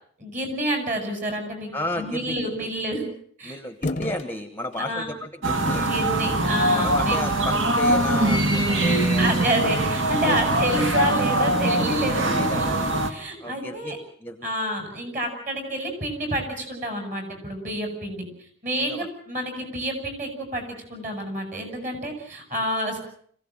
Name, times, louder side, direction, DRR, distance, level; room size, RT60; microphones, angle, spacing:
voice 1, 0.2-1.7 2.0-3.1 3.4-3.6 4.8-5.1 5.8-7.2 9.2-12.8 13.1-14.0 14.4-18.2 18.6-20.6 20.9-23.0, right 1 dB, 35° right, 5 dB, 8.0 m, -28 dB
voice 2, 1.7-2.7 3.4-5.9 6.7-9.8 10.2-10.4 10.7-11.1 12.3-12.8 13.4-14.5 18.8-19.1, left 1 dB, 10° left, 7 dB, 1.2 m, -33 dB
sound 1, 3.8-4.3 4.7-4.9 5.7-6.0 6.8-7.1 7.9-8.8 10.2-10.7, left 2 dB, 35° left, 0.9 m, -33 dB
sound 2, 5.4-13.1, right 1 dB, 60° right, 2.2 m, -22 dB
26.0 x 16.5 x 8.9 m, 0.62 s
head